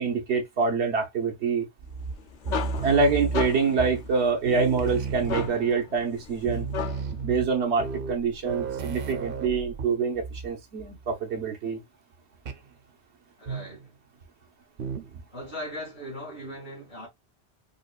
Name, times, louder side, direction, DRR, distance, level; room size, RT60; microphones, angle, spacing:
voice 1, 0.0-1.7 2.8-6.7 7.2-11.8, right 4 dB, 90° right, 1.2 m, -26 dB
sound 1, 1.8-4.2 4.5-5.8 6.1-6.2 6.4-10.5 10.8-11.1 12.5-12.7 13.5-13.9 14.8-15.2, right 5 dB, 60° right, 0.7 m, -33 dB
sound 2, 2.0-7.2, left 7 dB, 55° left, 0.6 m, -36 dB
voice 2, 13.4-13.9 15.3-17.1, equal, 85° left, 2.2 m, -38 dB
5.1 x 2.2 x 2.3 m
omnidirectional pair, 1.1 m